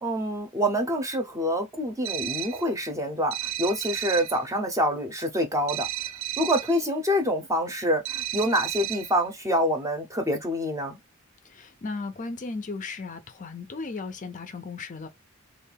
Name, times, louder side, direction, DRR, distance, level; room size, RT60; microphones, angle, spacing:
voice 1, 0.0-5.9 6.4-11.0, equal, 15° right, 0.7 m, -26 dB
sound 1, 2.0-2.7 3.3-4.4 5.7-6.8 8.0-9.2, right 13 dB, 70° right, 0.4 m, -33 dB
voice 2, 11.4-15.1, left 3 dB, 35° left, 0.5 m, -36 dB
3.2 x 2.5 x 3.3 m
head